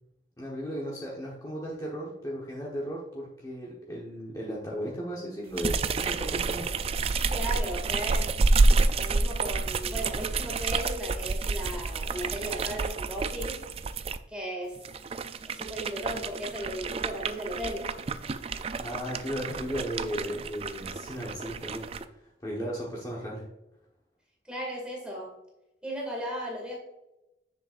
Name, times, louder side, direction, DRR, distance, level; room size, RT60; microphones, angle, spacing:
voice 1, 0.4-6.7 18.8-21.9 22.2-23.4, equal, 20° left, -5 dB, 1.1 m, -35 dB
sound 1, 5.5-14.2 14.8-22.0, right 3 dB, 30° right, 0.3 m, -29 dB
voice 2, 7.3-8.3 9.0-13.6 14.3-14.8 15.4-17.9 24.4-25.4 25.8-26.8, equal, 5° right, -2 dB, 2.1 m, -36 dB
7.5 x 6.7 x 2.5 m, 0.91 s
head